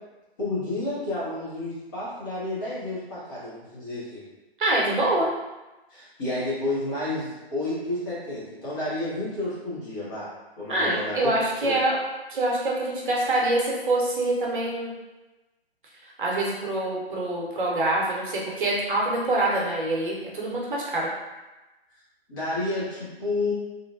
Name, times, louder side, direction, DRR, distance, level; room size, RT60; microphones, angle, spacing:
voice 1, 0.4-4.2 5.9-11.3 11.6-11.8 22.3-23.5, left 2 dB, 20° left, -10 dB, 0.7 m, -30 dB
voice 2, 4.6-5.3 10.7-11.9 12.3-14.9 16.2-21.1, right 2 dB, 50° right, -4 dB, 0.8 m, -25 dB
2.5 x 2.1 x 2.5 m, 1.1 s
figure-of-eight pair, 135°, 32 cm